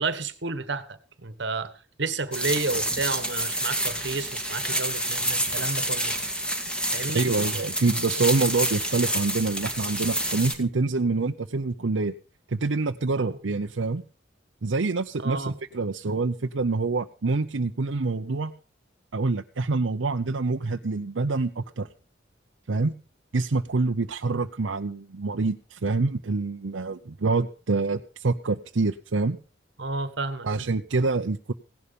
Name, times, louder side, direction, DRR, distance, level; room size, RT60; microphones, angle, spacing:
voice 1, 0.0-1.7 2.0-6.1 6.9-7.3 13.2-13.4 15.2-15.6 29.8-30.5, right 3 dB, 65° right, 1.4 m, -31 dB
sound 1, 2.3-10.5, right 1 dB, 5° left, 2.1 m, -28 dB
voice 2, 7.1-12.1 12.5-14.0 14.6-18.5 19.1-21.9 22.7-22.9 23.3-29.4 30.4-31.5, right 3 dB, 85° right, 0.7 m, -26 dB
17.0 x 11.0 x 5.2 m
head